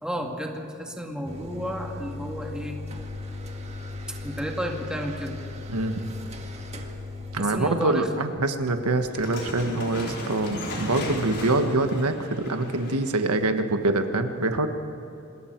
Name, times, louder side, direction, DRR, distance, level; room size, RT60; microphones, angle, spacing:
voice 1, 0.0-2.8 4.1-5.4 7.4-8.1, equal, 5° right, 1 dB, 2.1 m, -32 dB
sound 1, 1.2-9.9, left 2 dB, 30° right, 1.9 m, -37 dB
voice 2, 7.3-14.7, right 2 dB, 85° right, 6 dB, 1.4 m, -25 dB
sound 2, 9.1-13.3, left 1 dB, 50° left, 4.3 m, -36 dB
27.0 x 21.0 x 4.6 m, 2.8 s
head